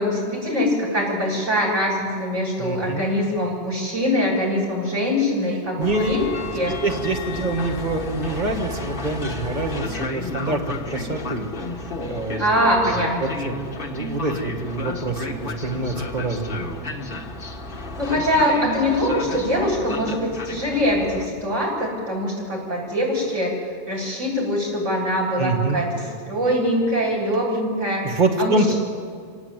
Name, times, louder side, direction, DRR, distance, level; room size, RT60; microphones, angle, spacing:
voice 1, 0.0-6.2 6.5-6.7 12.4-13.3 18.0-23.5 23.9-28.1 28.4-28.7, equal, 85° right, -4 dB, 8.4 m, -23 dB
voice 2, 2.6-3.1 5.8-6.2 6.6-11.5 12.1-12.4 12.9-13.0 13.2-16.6 25.4-25.8 28.0-28.7, right 2 dB, 40° right, 3 dB, 2.1 m, -25 dB
Train, 5.8-21.3, left 2 dB, 45° left, 1.7 m, -32 dB
26.0 x 18.0 x 9.2 m, 2.2 s
omnidirectional pair, 1.2 m